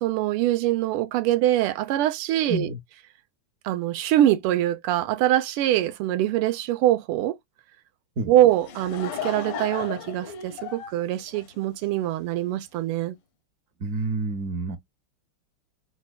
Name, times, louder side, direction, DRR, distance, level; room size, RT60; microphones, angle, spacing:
voice 1, 0.0-2.7 3.6-7.4 8.3-13.2, right 13 dB, 85° right, 1.5 m, -23 dB
Laughter / Crowd, 8.4-12.1, left 7 dB, 75° left, 1.6 m, -36 dB
voice 2, 13.8-14.8, right 2 dB, 65° right, 0.8 m, -28 dB
4.3 x 2.2 x 2.3 m
omnidirectional pair, 2.4 m